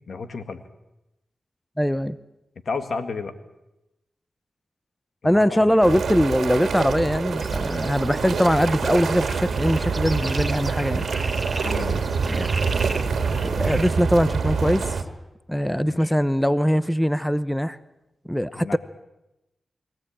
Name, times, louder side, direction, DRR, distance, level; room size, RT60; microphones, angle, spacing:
voice 1, 0.1-0.6 2.7-3.3 5.2-5.8 11.6-12.0 15.7-16.1 18.6-18.8, left 4 dB, 70° left, 1.9 m, -32 dB
voice 2, 1.8-2.2 5.2-11.1 12.3-12.5 13.4-15.0 15.5-17.8 18.3-18.8, equal, 5° left, 0.8 m, -22 dB
sound 1, 5.8-15.0, right 5 dB, 80° right, 2.0 m, -26 dB
sound 2, 7.4-13.9, right 2 dB, 30° right, 2.3 m, -36 dB
23.0 x 17.0 x 8.8 m
cardioid pair, 50°, 0 cm